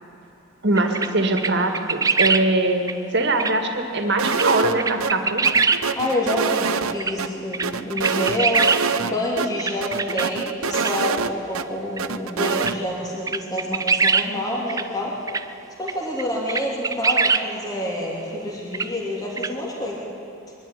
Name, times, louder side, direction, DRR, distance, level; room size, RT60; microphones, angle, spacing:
voice 1, 0.6-5.4, right 2 dB, 50° right, 5 dB, 2.0 m, -22 dB
sound 1, 0.8-1.1 1.4-2.4 2.9-3.0 3.4-3.5 4.3-4.5 4.8-5.8 7.0-7.1 7.5-7.7 8.0-8.8 9.6-10.2 10.8-10.9 12.0-12.1 12.6-12.7 13.3-14.3 14.7-14.8 15.3-15.4 15.9-16.0 16.2-16.3 16.5-17.4 18.7-18.9 19.4-19.5, right 4 dB, 15° right, 0.4 m, -21 dB
sound 2, 4.2-4.7 5.0-5.1 5.4-7.3 7.6-9.1 9.4-9.5 9.8-11.6 12.0-12.8, right 6 dB, 75° right, 0.8 m, -25 dB
voice 2, 5.9-15.1 15.8-20.0, left 1 dB, 15° left, -3 dB, 2.9 m, -27 dB
22.5 x 12.5 x 9.9 m, 2.8 s
head